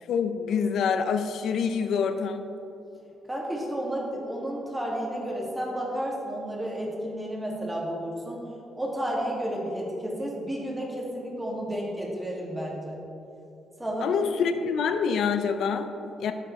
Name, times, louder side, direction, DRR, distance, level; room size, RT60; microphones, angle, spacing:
voice 1, 0.1-2.5 14.0-16.3, left 6 dB, 70° left, 8 dB, 0.6 m, -26 dB
voice 2, 3.3-8.4 8.8-13.0 13.8-14.2, equal, 10° right, -4 dB, 2.2 m, -32 dB
11.5 x 8.1 x 3.2 m, 2.8 s
cardioid pair, 90°, 0 cm